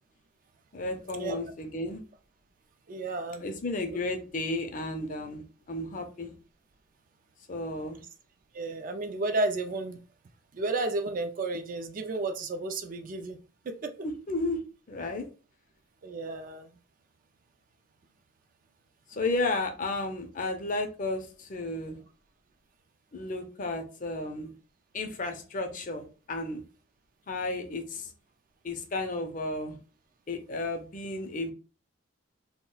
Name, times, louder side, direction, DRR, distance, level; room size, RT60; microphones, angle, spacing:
voice 1, 0.7-2.0 3.4-6.3 7.5-8.0 14.0-14.6 14.9-15.3 19.1-22.0 23.1-24.5 24.9-26.6 27.3-28.1 28.6-29.8 30.3-31.5, left 2 dB, 40° left, 0.5 m, -33 dB
voice 2, 2.9-3.4 8.5-10.0 10.5-13.4 13.7-13.9 16.0-16.7, right 2 dB, 40° right, 0.3 m, -32 dB
2.3 x 2.1 x 3.7 m
head